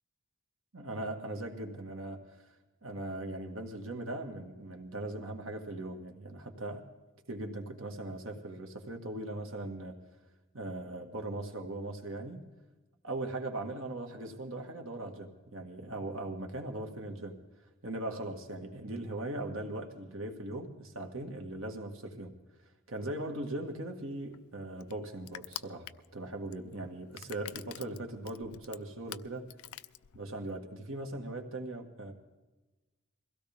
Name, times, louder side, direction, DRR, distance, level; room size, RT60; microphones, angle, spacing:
voice 1, 0.7-2.5 2.8-6.8 7.3-10.0 10.5-12.4 13.0-17.4 17.8-22.3 22.9-29.5 30.1-32.1, right 2 dB, 65° right, 3 dB, 1.9 m, -39 dB
Crushing, 23.7-30.5, left 13 dB, 75° left, 0.5 m, -47 dB
22.5 x 16.5 x 3.6 m, 1.1 s
head